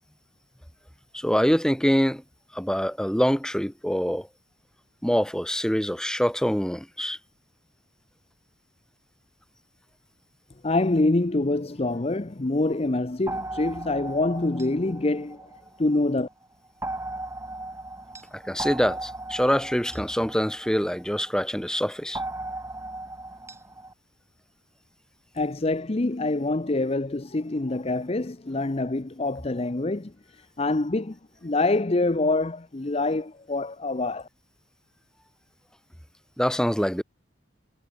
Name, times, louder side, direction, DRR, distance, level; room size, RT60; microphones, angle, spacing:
voice 1, 1.1-2.2 2.5-4.3 5.0-7.2 18.3-22.2 36.4-37.0, equal, 5° left, 1.9 m, -25 dB
voice 2, 10.6-16.3 25.3-34.3, left 2 dB, 30° left, 0.7 m, -26 dB
sound 1, 13.3-16.0 16.8-21.4 22.1-23.9, right 2 dB, 15° right, 7.5 m, -37 dB
head